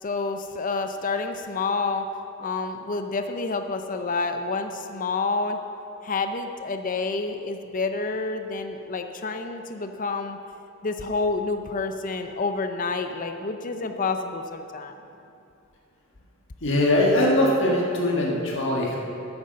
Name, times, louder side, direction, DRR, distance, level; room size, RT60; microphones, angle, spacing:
voice 1, 0.0-2.1 2.4-5.6 6.0-10.4 10.8-14.9, left 3 dB, 40° left, 7 dB, 0.6 m, -28 dB
voice 2, 16.6-19.0, left 1 dB, 65° left, -2 dB, 1.7 m, -21 dB
9.3 x 9.0 x 6.5 m, 2.7 s
head